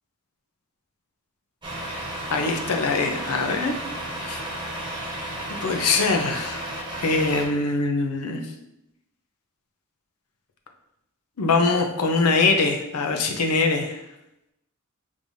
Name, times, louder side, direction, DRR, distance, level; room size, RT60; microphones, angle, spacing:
Truck, 1.6-7.5, right 1 dB, 20° right, 1.1 m, -33 dB
voice 1, 2.3-3.7 4.2-4.4 5.6-6.6 7.0-8.4 11.4-14.0, left 3 dB, 85° left, 4 dB, 0.6 m, -23 dB
5.2 x 3.2 x 2.7 m, 0.85 s
head